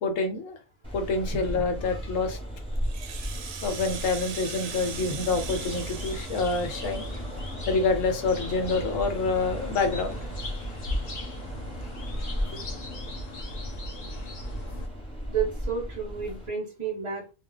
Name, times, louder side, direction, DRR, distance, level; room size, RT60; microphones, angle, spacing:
voice 1, 0.0-0.6 0.9-2.4 3.6-7.0 7.7-10.2 12.5-12.6, left 3 dB, 80° left, 6 dB, 1.1 m, -27 dB
sound 1, 0.8-16.5, equal, 5° left, 0.8 m, -37 dB
Rattle (instrument), 2.8-7.5, right 7 dB, 85° right, 1.0 m, -40 dB
sound 2, 5.3-14.9, left 1 dB, 60° left, 0.4 m, -37 dB
voice 2, 15.3-17.3, right 6 dB, 35° right, -1 dB, 0.6 m, -31 dB
2.3 x 2.2 x 3.7 m, 0.29 s
omnidirectional pair, 1.4 m